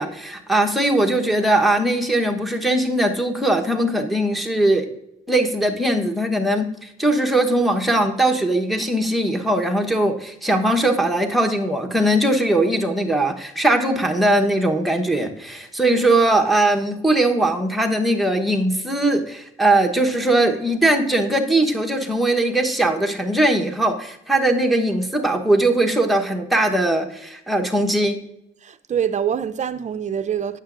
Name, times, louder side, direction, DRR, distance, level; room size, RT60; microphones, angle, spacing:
voice 1, 0.0-4.9 5.3-28.2, right 1 dB, ahead, 1.1 m, -20 dB
voice 2, 28.6-30.6, right 8 dB, 35° right, 0.5 m, -25 dB
9.2 x 6.9 x 2.5 m
cardioid pair, 90°, 20 cm